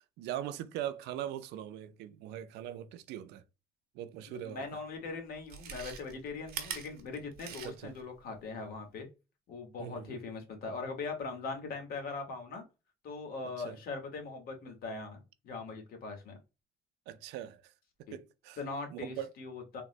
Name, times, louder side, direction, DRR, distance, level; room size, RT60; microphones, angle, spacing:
voice 1, 0.0-3.4 3.9-4.7 7.6-7.9 9.8-10.2 13.6-13.8 17.1-17.7 18.1-18.6 18.9-19.3, right 11 dB, 85° right, 0.4 m, -41 dB
voice 2, 4.4-9.1 9.5-12.6 13.0-15.2 15.4-16.4 18.1-18.2 18.6-19.8, left 4 dB, 60° left, 1.1 m, -40 dB
Chewing mastication, 4.6-4.7 5.4-8.0 8.4-8.5, right 8 dB, 65° right, 0.8 m, -43 dB
3.6 x 2.0 x 2.5 m
cardioid pair, 110°, 17 cm